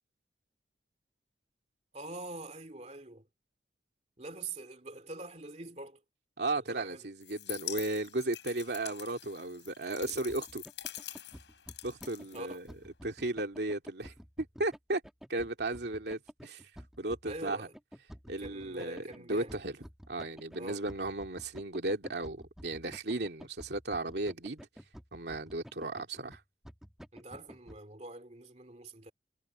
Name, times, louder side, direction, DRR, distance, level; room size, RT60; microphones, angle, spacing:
voice 1, 1.9-3.3 4.2-6.0 6.5-7.1 12.3-12.6 17.2-17.7 18.4-19.6 20.6-20.9 27.1-29.1, right 2 dB, 40° right, 2.7 m, -44 dB
voice 2, 6.4-10.6 11.8-12.6 13.0-15.0 15.3-16.6 17.0-17.6 18.3-19.0 19.3-19.7 20.1-24.6 25.1-26.4, right 2 dB, 70° right, 2.3 m, -35 dB
sound 1, 7.2-12.9, left 14 dB, 85° left, 5.9 m, -45 dB
sound 2, 10.0-27.8, equal, 5° right, 1.3 m, -51 dB
head